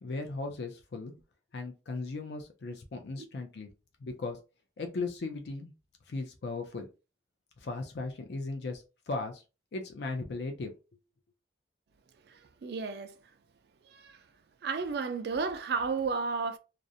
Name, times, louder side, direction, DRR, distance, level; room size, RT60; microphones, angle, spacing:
voice 1, 0.0-1.1 1.5-3.7 4.0-4.4 4.8-5.7 6.1-6.9 7.6-9.4 9.7-10.7, left 3 dB, 60° left, 0.4 m, -37 dB
voice 2, 12.6-13.1 13.9-14.2 14.6-16.6, right 4 dB, 60° right, 0.4 m, -32 dB
2.4 x 2.0 x 2.6 m
head